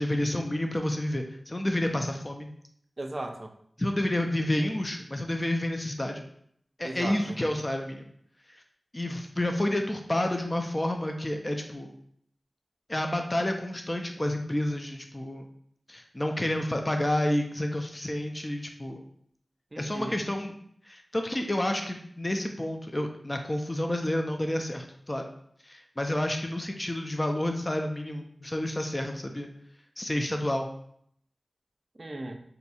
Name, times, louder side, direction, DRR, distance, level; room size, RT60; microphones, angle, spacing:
voice 1, 0.0-2.5 3.8-6.2 6.8-8.1 8.5-8.6 8.9-11.9 12.9-15.5 15.9-19.0 19.8-20.5 20.8-25.3 25.6-29.5 30.0-30.7, left 1 dB, 30° left, 4 dB, 0.4 m, -29 dB
voice 2, 3.0-3.5 4.6-4.7 6.8-7.4 19.7-20.2 32.0-32.4, right 1 dB, 45° right, 5 dB, 0.4 m, -37 dB
2.7 x 2.3 x 4.1 m, 0.68 s
cardioid pair, 45°, 0 cm